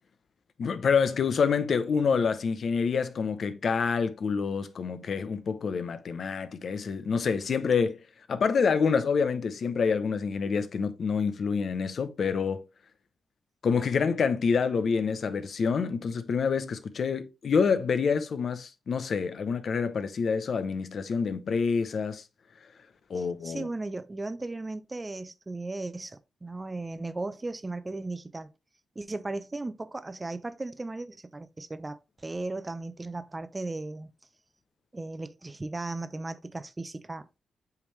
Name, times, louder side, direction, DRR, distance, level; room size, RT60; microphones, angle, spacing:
voice 1, 0.6-8.0 8.3-12.6 13.6-22.2 23.1-23.7, left 5 dB, 65° left, 0.8 m, -27 dB
voice 2, 23.2-28.5 29.0-34.1 34.9-37.3, right 2 dB, 25° right, 0.7 m, -36 dB
8.3 x 3.5 x 3.2 m
cardioid pair, 60°, 0 cm